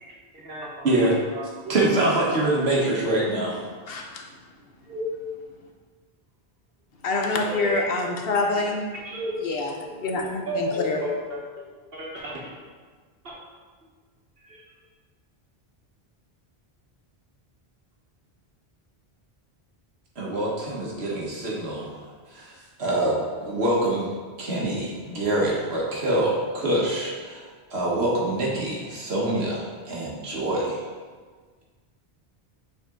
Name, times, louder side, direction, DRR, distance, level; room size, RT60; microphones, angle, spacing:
voice 1, 0.0-1.1 1.4-1.8 4.9-5.0 7.5-7.8 8.4-8.6 9.0-9.7 10.5-11.4 11.9-12.5 14.4-14.6, right 1 dB, 65° right, -4 dB, 1.6 m, -33 dB
voice 2, 1.7-3.6 9.9-10.0 20.2-22.0 22.3-24.1 24.4-27.4 27.7-30.9, right 1 dB, 80° right, -4 dB, 1.5 m, -25 dB
voice 3, 3.9-4.2 7.0-8.9 9.4-9.7 10.0-11.0, left 3 dB, 70° left, 1 dB, 1.0 m, -26 dB
7.4 x 4.2 x 3.7 m, 1.5 s
omnidirectional pair, 1.1 m